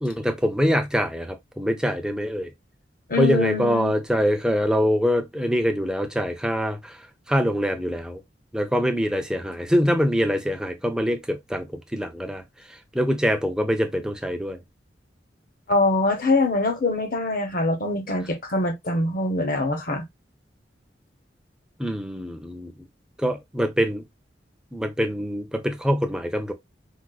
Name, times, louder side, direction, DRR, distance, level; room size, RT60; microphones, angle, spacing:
voice 1, 0.0-2.5 3.2-6.9 7.3-8.2 8.5-12.4 12.9-14.6 21.8-22.7 23.2-24.0 24.7-26.5, equal, 5° right, 0.5 m, -24 dB
voice 2, 3.1-3.9 15.7-20.1, left 2 dB, 50° left, 0.7 m, -23 dB
4.7 x 2.0 x 2.3 m
head